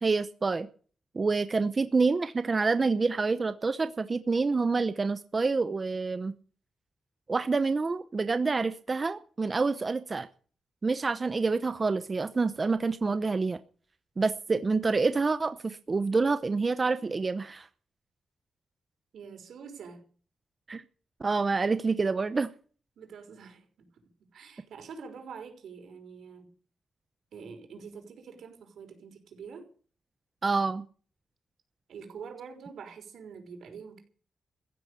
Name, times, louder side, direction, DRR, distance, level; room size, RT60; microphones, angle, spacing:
voice 1, 0.0-0.7 1.1-6.3 7.3-10.3 10.8-13.6 14.2-17.7 20.7-20.8 21.2-22.5 30.4-30.8, right 4 dB, 35° right, 0.9 m, -27 dB
voice 2, 19.1-20.0 23.0-26.5 27.3-29.7 31.9-34.0, right 6 dB, 90° right, 5.5 m, -46 dB
15.0 x 10.0 x 8.3 m
wide cardioid pair, 110°, 0 cm